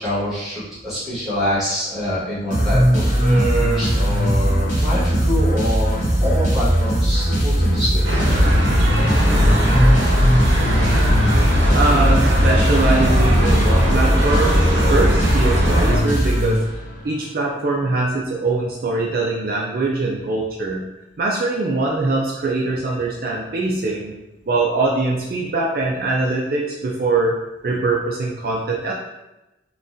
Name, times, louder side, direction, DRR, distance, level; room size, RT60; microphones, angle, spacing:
voice 1, 0.0-8.0 15.7-15.9, equal, ahead, -12 dB, 1.3 m, -25 dB
sound 1, 2.5-17.1, equal, 45° left, 0.9 m, -19 dB
sound 2, 8.0-16.0, equal, 80° right, 0.8 m, -19 dB
voice 2, 11.7-16.6 17.0-20.9 21.2-24.1 24.4-27.4 27.6-28.9, right 2 dB, 50° right, -2 dB, 0.4 m, -22 dB
3.8 x 2.2 x 2.5 m, 0.98 s
head